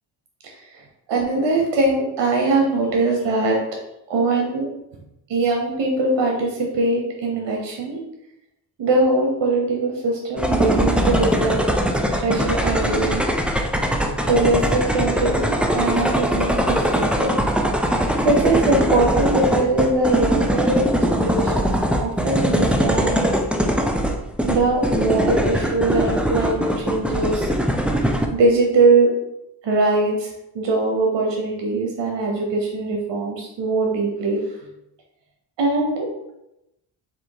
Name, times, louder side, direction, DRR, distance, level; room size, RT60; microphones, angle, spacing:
voice 1, 1.1-3.6 4.1-4.7 5.3-8.0 8.8-11.6 12.1-13.3 14.2-17.4 18.2-23.2 24.5-27.5 28.3-29.1 29.6-34.4 35.6-36.3, right 2 dB, 80° right, 0 dB, 0.9 m, -21 dB
sound 1, 10.4-28.3, equal, 5° right, 0.5 m, -21 dB
4.3 x 2.6 x 4.6 m, 0.86 s
cardioid pair, 65°, 43 cm